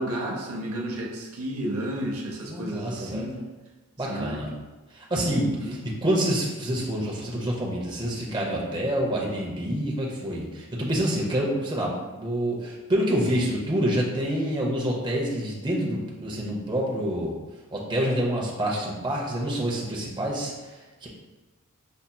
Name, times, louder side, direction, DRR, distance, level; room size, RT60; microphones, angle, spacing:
voice 1, 0.0-3.4 4.1-4.4 5.1-5.8, right 1 dB, 80° right, 0 dB, 0.6 m, -32 dB
voice 2, 2.4-3.3 4.0-4.5 4.9-17.4 17.7-21.1, equal, 20° right, -3 dB, 0.6 m, -27 dB
5.3 x 2.8 x 2.2 m, 1.2 s
head